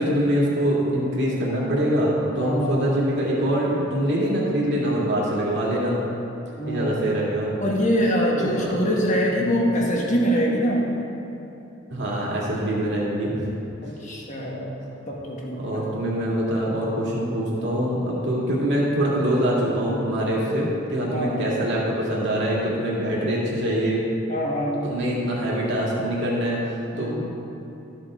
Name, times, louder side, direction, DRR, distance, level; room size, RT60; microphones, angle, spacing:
voice 1, 0.0-6.0 6.7-7.5 8.4-8.9 9.3-9.7 11.9-13.4 15.6-24.0 24.8-27.1, right 1 dB, 60° right, -5 dB, 2.3 m, -24 dB
voice 2, 2.3-2.8 6.5-7.1 7.6-10.8 13.8-14.7 15.1-15.8 21.1-21.5 24.3-24.9 26.9-27.3, equal, 35° left, -2 dB, 1.6 m, -24 dB
13.0 x 7.3 x 3.8 m, 3.0 s
head